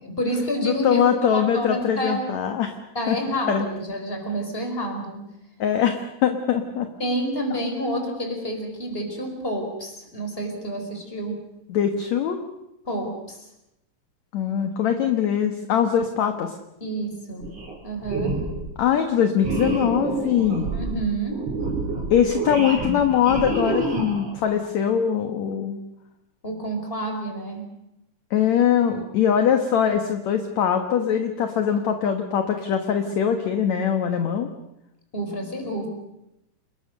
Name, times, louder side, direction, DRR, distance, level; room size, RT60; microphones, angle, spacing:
voice 1, 0.0-1.0 1.3-2.3 2.9-5.2 7.0-11.4 12.8-13.4 16.8-17.5 17.8-18.4 20.7-21.4 22.6-23.0 26.4-27.6 35.1-35.9, right 1 dB, 15° left, 4 dB, 4.8 m, -29 dB
voice 2, 0.6-2.8 3.1-3.2 3.5-3.7 5.6-6.9 11.7-12.4 14.3-16.6 18.8-20.7 22.1-25.8 28.3-34.5, left 8 dB, 60° left, 6 dB, 2.5 m, -22 dB
sound 1, 17.4-17.8 18.0-18.7 19.4-24.4, right 3 dB, 45° right, 6.0 m, -28 dB
29.0 x 21.0 x 6.6 m, 0.87 s
omnidirectional pair, 4.0 m